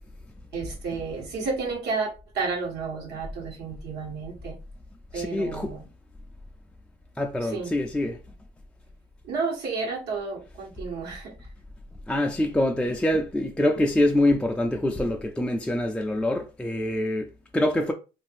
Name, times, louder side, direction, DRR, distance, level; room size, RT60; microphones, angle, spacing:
voice 1, 0.5-4.6 5.1-5.8 7.4-7.7 9.2-11.3, right 4 dB, 80° right, 1.3 m, -31 dB
voice 2, 5.1-5.7 7.2-8.2 12.1-17.9, left 1 dB, 5° left, 0.3 m, -25 dB
2.6 x 2.5 x 3.3 m
cardioid pair, 110°, 17 cm